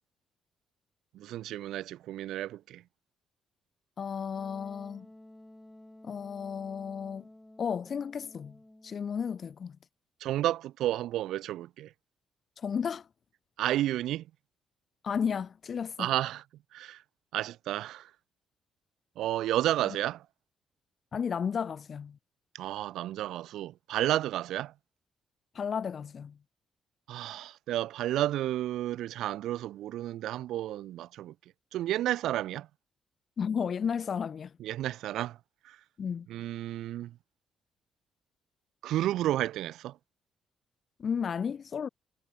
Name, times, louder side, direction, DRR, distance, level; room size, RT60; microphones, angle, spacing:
voice 1, 1.1-2.8 10.2-11.9 13.6-14.3 16.0-16.4 16.7-17.0 17.3-18.1 19.2-20.2 22.5-24.7 27.1-31.3 31.7-32.7 34.6-35.4 35.6-35.8 36.3-37.2 38.8-40.0, right 13 dB, 85° right, 1.0 m, -31 dB
voice 2, 4.0-5.1 6.0-7.3 7.6-8.6 8.8-9.8 12.6-13.1 15.0-16.1 21.1-22.2 25.5-26.4 33.4-34.5 36.0-36.3 41.0-41.9, left 7 dB, 50° left, 1.2 m, -33 dB
Wind instrument woodwind instrument, 4.3-9.2, left 1 dB, 10° left, 6.3 m, -53 dB
cardioid pair, 90°, 0 cm